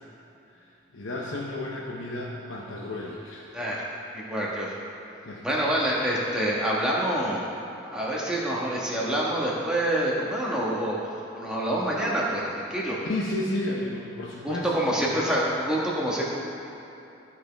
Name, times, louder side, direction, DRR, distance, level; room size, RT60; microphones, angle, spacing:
voice 1, 0.9-3.5 5.3-5.6 13.0-15.3, left 1 dB, 90° left, -3 dB, 0.8 m, -32 dB
voice 2, 3.5-3.8 4.1-4.7 5.4-7.4 7.9-13.0 14.4-16.2, right 1 dB, 5° right, -6 dB, 1.3 m, -27 dB
14.5 x 5.0 x 3.5 m, 2.9 s
head